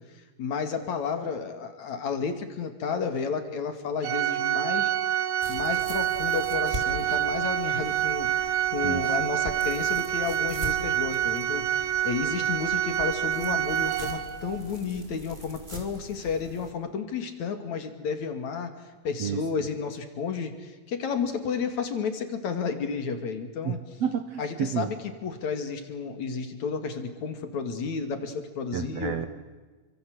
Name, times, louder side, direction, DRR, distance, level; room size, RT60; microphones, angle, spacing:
voice 1, 0.4-4.9 5.5-23.8 24.4-24.9 25.2-29.1, left 5 dB, 55° left, 8 dB, 3.5 m, -32 dB
Organ, 4.0-14.6, right 11 dB, 80° right, 3.0 m, -27 dB
sound 1, 5.4-16.7, equal, 15° right, 3.8 m, -42 dB
voice 2, 23.6-24.9 28.7-29.3, right 8 dB, 60° right, 10 dB, 1.9 m, -30 dB
28.5 x 25.5 x 8.0 m, 1.3 s
omnidirectional pair, 3.9 m